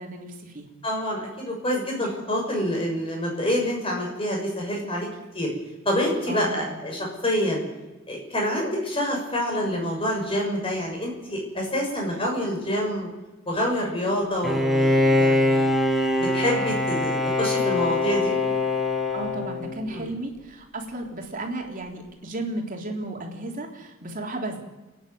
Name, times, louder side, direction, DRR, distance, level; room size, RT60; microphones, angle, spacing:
voice 1, 0.0-0.7 6.3-6.8 19.1-24.6, right 2 dB, 40° right, 1 dB, 3.5 m, -34 dB
voice 2, 0.8-5.1 5.3-5.5 5.8-7.6 8.1-13.1 13.5-15.7 16.2-18.3 19.9-20.0, equal, 25° left, 0 dB, 6.7 m, -27 dB
Bowed string instrument, 14.4-20.0, left 2 dB, ahead, 2.2 m, -23 dB
29.5 x 10.5 x 9.4 m, 1.1 s
head